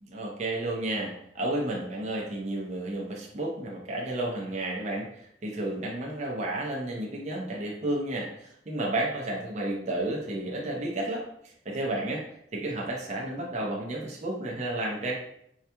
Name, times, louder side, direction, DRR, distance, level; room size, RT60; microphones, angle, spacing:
voice 1, 0.0-12.3 12.5-15.1, right 1 dB, 40° right, -2 dB, 0.7 m, -32 dB
4.7 x 2.8 x 2.2 m, 0.72 s
head